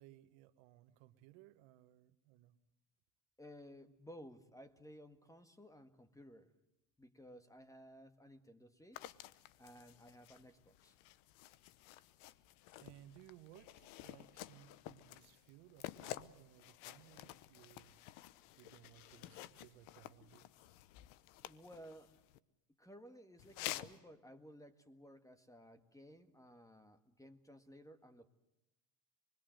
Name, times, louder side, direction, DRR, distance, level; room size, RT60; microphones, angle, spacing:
voice 1, 0.0-2.6 12.8-18.0 18.6-20.5, right 14 dB, 85° right, 11 dB, 1.3 m, -61 dB
voice 2, 3.4-6.5 7.0-9.1 9.6-11.0 21.4-22.2 22.8-28.3, equal, 5° left, 9 dB, 1.7 m, -57 dB
sound 1, 8.9-22.4 23.4-24.0, left 14 dB, 80° left, 1.0 m, -51 dB
26.0 x 21.0 x 7.7 m, 0.95 s
supercardioid pair, 90°, 49 cm